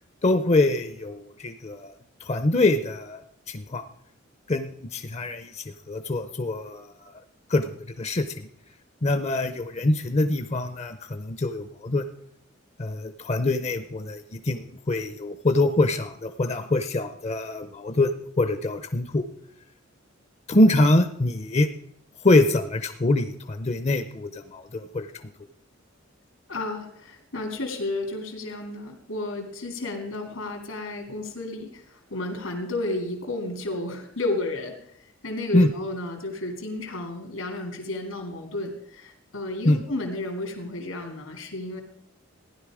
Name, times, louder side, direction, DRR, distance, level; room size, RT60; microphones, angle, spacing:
voice 1, 0.2-1.9 2.2-3.2 3.5-3.8 4.5-7.1 7.5-8.5 9.0-12.0 12.8-19.2 20.5-21.7 22.2-25.1 35.5-35.7 39.6-39.8, left 2 dB, 30° left, 9 dB, 0.6 m, -24 dB
voice 2, 26.5-34.7 35.2-41.8, left 2 dB, 85° left, 3 dB, 2.4 m, -32 dB
15.0 x 10.5 x 4.9 m, 0.70 s
head